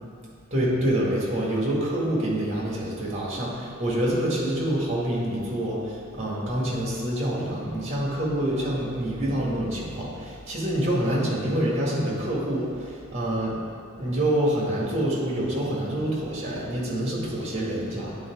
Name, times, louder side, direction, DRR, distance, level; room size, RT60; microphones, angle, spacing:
voice 1, 0.5-13.5 14.0-18.2, right 1 dB, 30° right, -5 dB, 1.8 m, -26 dB
9.5 x 3.9 x 4.7 m, 2.5 s
head